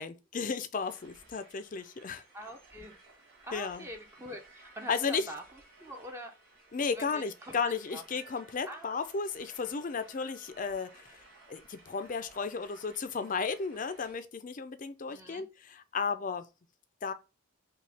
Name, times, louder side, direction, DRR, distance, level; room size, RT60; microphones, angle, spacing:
voice 1, 0.0-2.2 3.5-3.9 4.9-5.3 6.7-11.2 11.5-16.4 17.0-17.1, left 5 dB, 40° left, 0.4 m, -34 dB
sound 1, 0.7-14.1, right 3 dB, 45° right, 2.1 m, -58 dB
voice 2, 2.3-2.9 3.4-5.4 5.8-6.3 6.9-7.6 7.9-8.0 8.7-9.0 15.1-15.4, equal, 10° right, 0.5 m, -44 dB
5.4 x 2.3 x 3.3 m
head